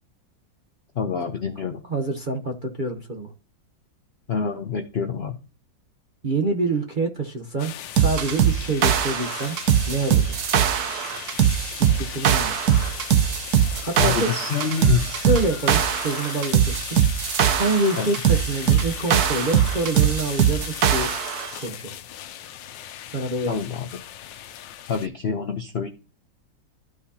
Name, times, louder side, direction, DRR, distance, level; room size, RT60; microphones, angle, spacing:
voice 1, 1.0-1.8 4.3-5.4 14.0-15.1 18.0-18.1 23.5-24.0 24.9-25.9, left 6 dB, 60° left, 7 dB, 0.6 m, -26 dB
voice 2, 1.9-3.3 6.2-9.6 9.9-10.4 11.8-12.5 13.8-14.8 15.1-17.0 17.5-21.1 21.6-22.0 23.1-23.6, right 2 dB, 40° right, 3 dB, 0.8 m, -27 dB
sound 1, 7.6-25.1, left 11 dB, 80° left, 1.3 m, -37 dB
sound 2, 8.0-21.5, right 9 dB, 60° right, 1.2 m, -21 dB
13.5 x 4.8 x 2.8 m, 0.34 s
omnidirectional pair, 2.0 m